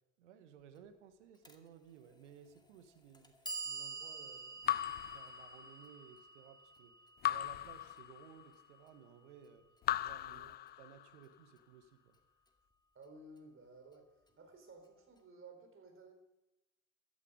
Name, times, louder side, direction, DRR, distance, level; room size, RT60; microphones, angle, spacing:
voice 1, 0.2-7.0 7.2-9.7 10.0-12.1, right 8 dB, 70° right, 9 dB, 1.7 m, -58 dB
Clock, 1.5-1.6 2.5-2.6 3.1-9.2, right 4 dB, 10° left, 2.2 m, -48 dB
Raindrop / Drip, 4.7-6.0 7.2-8.6 9.8-11.2, left 13 dB, 30° left, 0.4 m, -38 dB
voice 2, 12.9-14.1 14.4-16.1, right 3 dB, 35° right, 4 dB, 4.5 m, -56 dB
15.5 x 12.5 x 5.2 m, 0.98 s
figure-of-eight pair, 60°, 37 cm